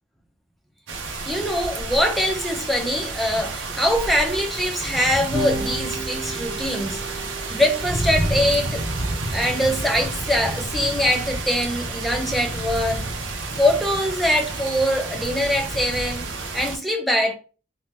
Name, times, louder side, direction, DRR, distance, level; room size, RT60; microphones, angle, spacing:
sound 1, 0.9-16.8, right 2 dB, 85° right, 0.6 m, -30 dB
voice 1, 1.3-8.8 9.3-13.1 13.5-16.3 16.5-17.4, equal, ahead, 0.4 m, -23 dB
Electric guitar / Bass guitar, 5.3-11.7, right 2 dB, 45° right, 0.9 m, -36 dB
2.7 x 2.1 x 3.2 m
head